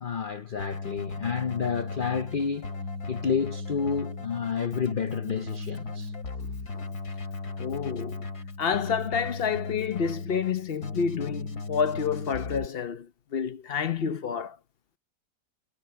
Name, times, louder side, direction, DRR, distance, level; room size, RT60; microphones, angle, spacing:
voice 1, 0.0-2.7 3.1-6.1, left 6 dB, 90° left, 0.4 m, -30 dB
Keyboard (musical), 0.6-12.7, left 3 dB, 65° left, 3.2 m, -36 dB
voice 2, 7.6-8.3 8.6-13.1 13.3-14.6, left 6 dB, 50° left, 0.8 m, -29 dB
omnidirectional pair, 1.8 m